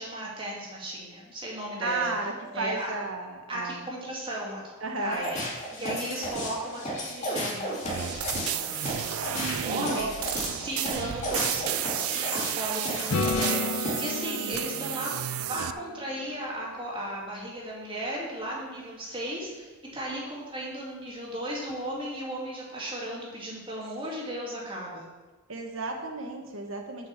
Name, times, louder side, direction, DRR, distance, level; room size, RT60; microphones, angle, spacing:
voice 1, 0.0-2.3 2.5-2.9 3.5-5.4 5.7-15.1 15.5-25.1, right 1 dB, 25° right, -4 dB, 2.4 m, -36 dB
voice 2, 1.8-3.8 4.8-5.2 9.5-10.2 25.5-27.1, right 3 dB, 75° right, 3 dB, 1.4 m, -33 dB
sound 1, 5.1-14.2, equal, 30° left, 2.4 m, -34 dB
sound 2, 7.8-15.7, right 12 dB, 90° right, 0.4 m, -32 dB
Acoustic guitar / Strum, 13.1-16.9 21.7-21.8, left 4 dB, 80° left, 0.7 m, -33 dB
8.2 x 5.9 x 6.8 m, 1.2 s
head